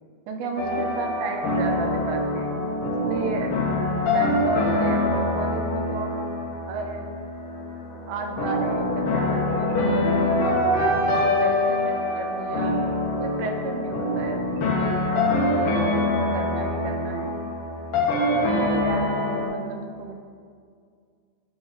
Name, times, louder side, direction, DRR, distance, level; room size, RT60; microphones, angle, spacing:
voice 1, 0.3-3.5 3.9-6.1 6.7-7.1 8.1-12.8 13.2-17.3 18.2-20.1, right 4 dB, 85° right, 2 dB, 2.3 m, -34 dB
sound 1, 0.6-19.5, left 1 dB, 60° left, 1.6 m, -24 dB
9.7 x 4.2 x 5.1 m, 2.1 s
omnidirectional pair, 3.6 m